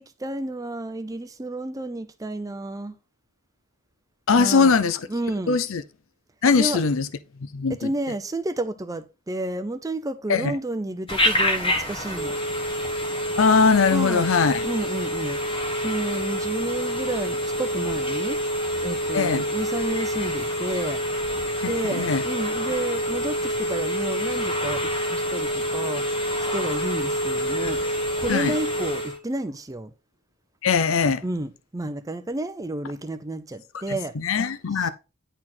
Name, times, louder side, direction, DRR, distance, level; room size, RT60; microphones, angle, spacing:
voice 1, 0.0-3.0 4.4-4.7 5.1-5.6 6.6-6.8 7.7-12.4 13.9-14.3 14.6-15.4 15.8-18.4 18.8-21.0 21.7-26.0 26.5-29.9 31.2-34.1 34.7-34.9, right 1 dB, 15° right, 0.5 m, -31 dB
voice 2, 4.3-5.0 5.5-5.8 6.4-7.1 7.5-7.9 10.3-10.5 13.4-14.7 19.1-19.5 21.6-22.2 28.3-28.5 30.6-31.2 34.2-34.9, left 5 dB, 65° left, 0.5 m, -21 dB
Telephone, 11.1-29.2, equal, 25° left, 1.3 m, -27 dB
10.0 x 4.2 x 4.3 m
head